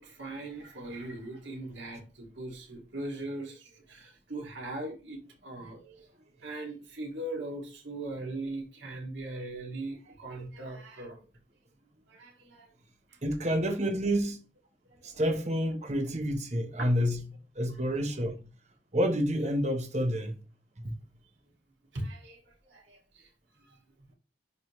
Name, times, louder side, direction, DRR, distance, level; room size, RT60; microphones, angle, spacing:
voice 1, 0.0-11.2 12.1-12.7 13.1-13.2 14.8-15.3 16.8-16.9 17.7-17.8 18.1-18.2 21.9-23.3 23.6-23.8, right 2 dB, 70° right, 2.5 m, -40 dB
voice 2, 13.2-14.4 15.0-17.2 17.6-18.3 18.9-20.4 20.8-21.0, equal, 35° right, 1.2 m, -28 dB
10.5 x 3.9 x 3.2 m
head